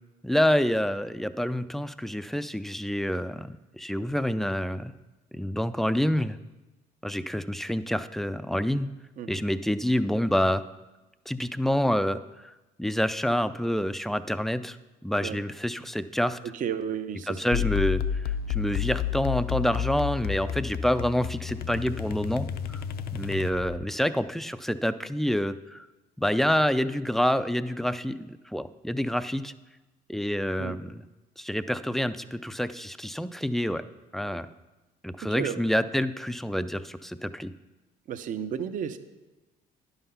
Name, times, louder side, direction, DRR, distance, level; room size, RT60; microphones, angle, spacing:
voice 1, 0.2-4.9 5.3-6.4 7.0-8.9 9.3-10.6 11.3-12.2 12.8-14.8 15.0-16.4 17.3-22.8 23.1-25.9 26.2-29.5 30.1-31.0 31.4-33.8 34.1-34.5 35.0-37.5, equal, ahead, 12 dB, 0.3 m, -27 dB
voice 2, 16.5-17.7 30.6-30.7 35.4-35.6 38.1-39.0, right 8 dB, 50° right, 9 dB, 0.6 m, -33 dB
sound 1, 17.5-23.9, left 9 dB, 65° left, 0.5 m, -31 dB
10.5 x 5.6 x 5.6 m, 1.1 s
cardioid pair, 110°, 17 cm